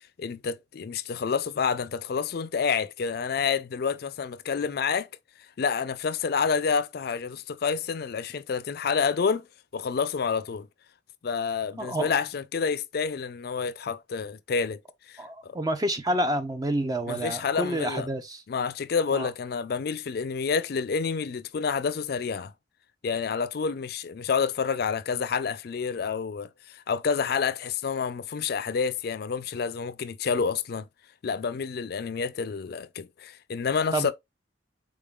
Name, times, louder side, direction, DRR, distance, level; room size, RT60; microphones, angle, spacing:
voice 1, 0.2-5.1 5.6-9.5 9.7-10.7 11.2-14.8 15.1-15.6 17.1-18.1 18.5-22.5 23.0-30.9 31.2-34.1, left 6 dB, 55° left, 0.4 m, -28 dB
voice 2, 11.8-12.2 15.2-18.4 19.1-19.3 33.9-34.1, right 1 dB, 20° right, 0.4 m, -29 dB
3.8 x 3.6 x 2.3 m
head